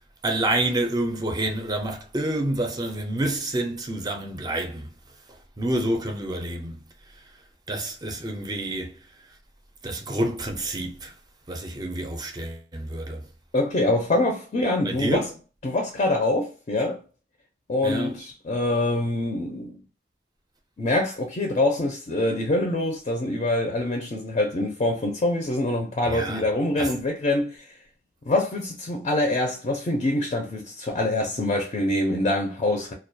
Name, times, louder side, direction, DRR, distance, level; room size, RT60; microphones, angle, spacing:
voice 1, 0.2-4.9 5.6-6.8 7.7-9.0 9.8-11.1 11.5-13.2 14.8-15.3 17.8-18.2 26.1-26.5 26.8-26.9, right 1 dB, 20° right, 0.4 m, -28 dB
voice 2, 13.5-15.3 15.6-17.0 17.7-19.8 20.8-27.7 28.2-32.9, left 2 dB, 35° left, 0.4 m, -25 dB
2.2 x 2.1 x 2.6 m
head